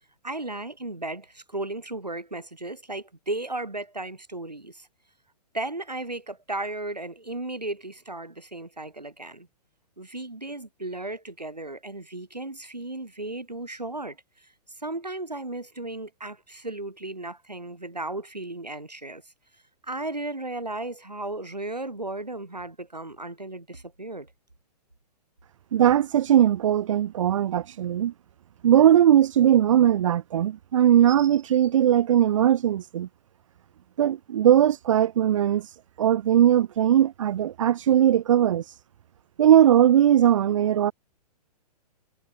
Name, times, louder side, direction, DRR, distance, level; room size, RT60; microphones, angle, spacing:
voice 1, 0.2-4.9 5.5-9.5 10.0-14.5 14.8-19.2 19.8-24.3, right 2 dB, 85° right, 3.6 m, -35 dB
voice 2, 25.7-28.1 28.6-33.1 34.0-38.8 39.4-40.9, right 10 dB, 50° right, 0.6 m, -19 dB
figure-of-eight pair, 115°, 21 cm